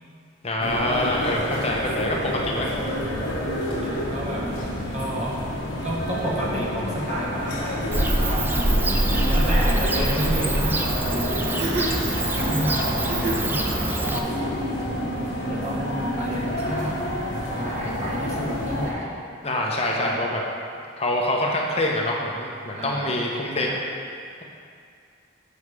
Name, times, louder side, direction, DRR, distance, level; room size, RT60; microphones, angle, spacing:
voice 1, 0.4-2.7 19.4-20.4 21.0-23.7, left 1 dB, 30° left, -2 dB, 0.9 m, -25 dB
sound 1, 0.6-18.9, equal, 65° left, 1.3 m, -29 dB
voice 2, 3.8-4.6 4.9-5.5 5.8-8.9 9.1-11.7 12.4-14.5 15.5-17.1 17.4-19.2 19.9-20.3 22.7-23.2 23.6-23.8, right 1 dB, 35° right, -3 dB, 1.0 m, -31 dB
Bird / Cricket, 7.9-14.2, right 1 dB, 10° right, 0.3 m, -24 dB
sound 2, 8.7-8.8 9.1-9.3 11.4-13.6, right 1 dB, 60° right, 1.0 m, -30 dB
7.1 x 5.7 x 4.8 m, 2.3 s
head